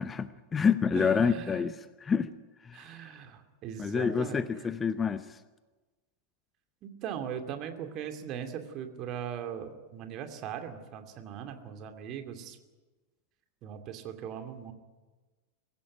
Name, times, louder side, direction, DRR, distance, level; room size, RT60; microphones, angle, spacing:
voice 1, 0.0-1.7 2.0-2.3 2.6-3.1 3.8-5.4, left 6 dB, 20° left, 14 dB, 0.7 m, -28 dB
voice 2, 0.9-1.7 2.7-4.7 6.8-12.6 13.6-14.7, right 8 dB, 35° right, 6 dB, 2.5 m, -39 dB
24.0 x 15.5 x 9.2 m, 1.3 s
figure-of-eight pair, 90°, 0 cm